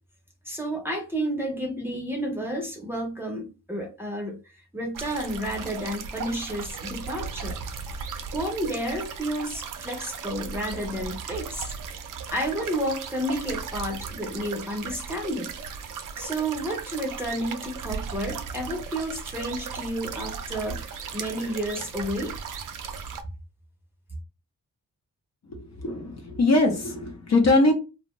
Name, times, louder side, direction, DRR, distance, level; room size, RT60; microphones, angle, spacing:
voice 1, 0.4-4.4 4.7-7.6 8.3-11.7 12.3-15.5 16.2-22.4, right 1 dB, 5° right, 1 dB, 0.6 m, -31 dB
sound 1, 4.9-23.2, right 6 dB, 70° right, 0.5 m, -36 dB
voice 2, 25.5-27.7, left 2 dB, 55° left, 2 dB, 0.7 m, -22 dB
2.5 x 2.1 x 3.0 m, 0.30 s
wide cardioid pair, 135°, 33 cm